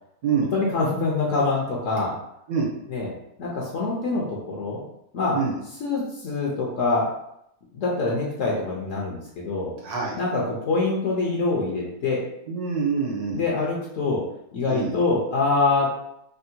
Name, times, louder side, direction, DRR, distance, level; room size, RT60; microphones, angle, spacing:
voice 1, 0.5-2.2 2.9-3.1 3.4-4.8 5.1-5.4 5.8-7.1 7.7-9.7 10.1-12.2 13.3-14.2 14.5-16.0, left 3 dB, 65° left, -3 dB, 0.9 m, -25 dB
voice 2, 9.8-10.2 12.5-13.4 14.7-14.9, right 5 dB, 80° right, -3 dB, 1.3 m, -25 dB
3.4 x 2.1 x 2.7 m, 0.78 s
omnidirectional pair, 1.6 m